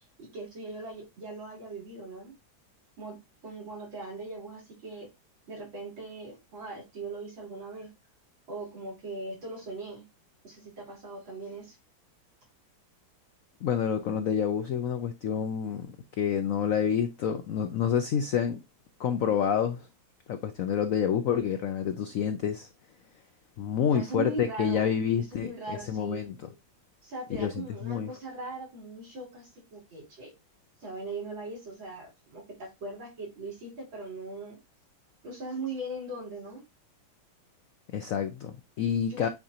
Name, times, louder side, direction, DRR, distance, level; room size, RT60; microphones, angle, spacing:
voice 1, 0.2-2.4 3.0-5.1 5.5-7.9 8.5-10.0 10.4-11.7 23.9-24.9 25.3-26.3 27.0-30.3 30.8-34.6 35.2-36.6 39.1-39.3, right 2 dB, 80° right, 4.2 m, -40 dB
voice 2, 13.6-15.9 16.2-18.6 19.0-19.9 20.3-22.7 23.6-26.4 27.4-27.5 27.8-28.1 37.9-39.3, left 8 dB, 75° left, 0.7 m, -28 dB
8.7 x 3.8 x 2.8 m
omnidirectional pair, 2.1 m